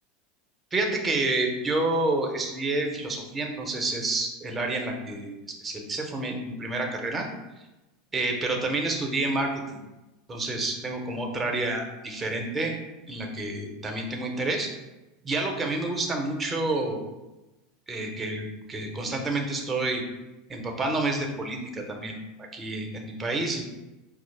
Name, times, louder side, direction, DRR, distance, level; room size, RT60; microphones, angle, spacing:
voice 1, 0.7-5.3 5.6-7.3 8.1-9.8 10.3-12.7 13.1-14.7 15.2-17.1 17.9-20.0 20.5-23.6, right 2 dB, 25° right, 2 dB, 0.7 m, -29 dB
4.6 x 2.0 x 3.2 m, 1.0 s
hypercardioid pair, 90°, 0 cm